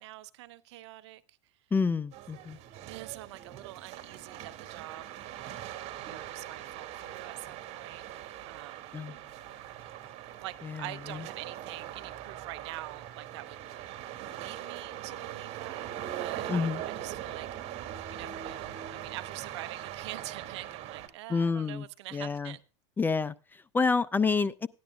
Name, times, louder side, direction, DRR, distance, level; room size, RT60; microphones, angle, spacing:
voice 1, 0.0-1.4 2.9-5.3 5.9-8.0 8.5-8.9 10.3-13.6 14.2-15.9 16.2-17.6 18.1-22.6, right 16 dB, 70° right, 0.9 m, -45 dB
voice 2, 1.7-2.6 8.9-9.1 10.6-10.8 11.1-11.2 16.5-16.8 21.3-21.8 22.1-22.5 23.0-24.7, left 4 dB, 15° left, 0.4 m, -28 dB
sound 1, 2.1-21.1, right 12 dB, 45° right, 2.1 m, -41 dB
17.0 x 10.5 x 2.3 m
supercardioid pair, 115°, 15 cm